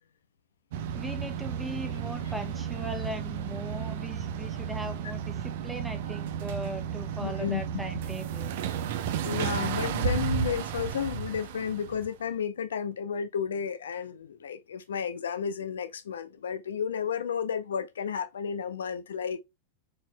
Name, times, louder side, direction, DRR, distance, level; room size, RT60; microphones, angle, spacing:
sound 1, 0.7-12.1, right 8 dB, 65° right, 0.6 m, -33 dB
voice 1, 0.9-8.5, right 1 dB, 5° right, 1.1 m, -39 dB
voice 2, 7.2-7.8 9.2-19.4, left 7 dB, 80° left, 0.5 m, -32 dB
4.4 x 4.2 x 2.2 m
hypercardioid pair, 95°, 0 cm